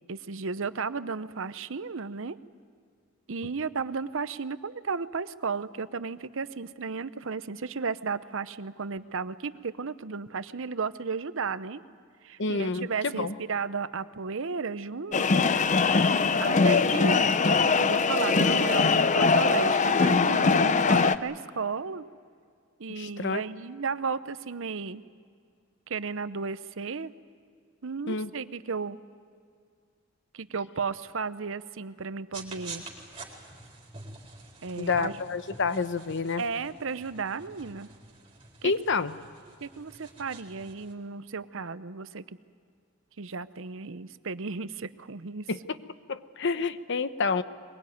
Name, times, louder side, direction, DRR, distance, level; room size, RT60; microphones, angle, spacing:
voice 1, 0.1-2.4 3.3-11.8 12.2-15.5 16.4-22.0 22.8-25.0 25.9-27.1 27.8-29.0 30.3-32.8 34.6-35.2 36.4-37.9 38.6-38.7 39.6-42.2 43.2-45.5, right 5 dB, 70° right, 14 dB, 0.8 m, -34 dB
voice 2, 12.4-13.3 23.0-23.4 28.1-28.3 34.8-36.4 38.6-39.2 45.5-45.6 46.1-47.4, left 4 dB, 60° left, 12 dB, 0.9 m, -28 dB
sound 1, 15.1-21.2, left 4 dB, 35° left, 0.6 m, -22 dB
sound 2, 32.3-40.9, right 3 dB, 25° right, 4.2 m, -47 dB
22.0 x 22.0 x 9.3 m, 2.2 s
head